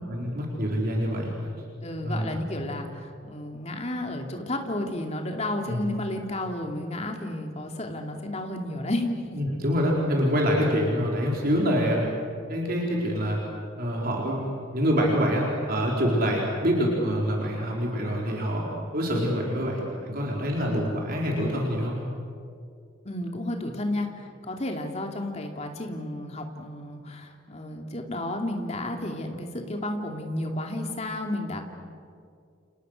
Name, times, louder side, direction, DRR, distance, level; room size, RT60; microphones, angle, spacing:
voice 1, 0.1-1.3 2.0-2.4 5.7-5.8 9.3-12.1 12.5-13.4 13.8-18.7 18.9-22.0, equal, 45° right, -2 dB, 4.4 m, -26 dB
voice 2, 1.8-9.1 10.4-10.6 23.0-31.6, left 1 dB, 35° left, 3 dB, 2.8 m, -32 dB
29.5 x 29.0 x 6.6 m, 2.3 s
head